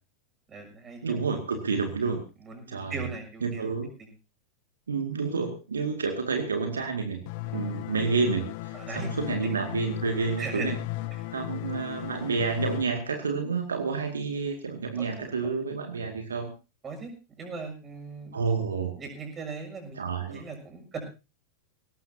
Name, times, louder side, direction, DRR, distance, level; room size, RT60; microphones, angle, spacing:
voice 1, 0.5-1.2 2.4-3.6 7.4-7.6 8.7-9.1 10.4-10.7 15.0-15.5 16.8-18.4 19.0-21.0, right 4 dB, 20° right, 4 dB, 6.7 m, -39 dB
voice 2, 1.0-2.2 2.7-3.1 3.4-3.9 4.9-7.2 7.5-10.8 11.3-16.5 18.3-18.9 20.0-20.4, right 5 dB, 70° right, 5 dB, 2.1 m, -29 dB
sound 1, 7.3-12.8, left 18 dB, 50° left, 0.9 m, -36 dB
20.5 x 18.5 x 2.8 m, 0.31 s
figure-of-eight pair, 90°, 0 cm